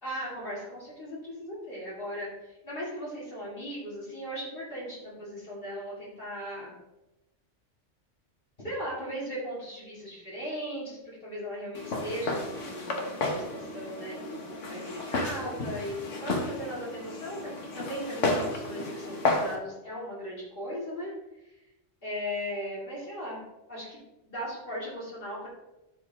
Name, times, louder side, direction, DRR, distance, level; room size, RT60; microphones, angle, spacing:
voice 1, 0.0-6.7 8.6-21.1 21.4-21.5 22.0-23.4 23.7-25.5, equal, 45° left, -7 dB, 3.0 m, -38 dB
Walk footsteps, 11.7-19.6, left 2 dB, 80° left, 1.6 m, -32 dB
11.5 x 5.0 x 3.7 m, 0.98 s
omnidirectional pair, 1.3 m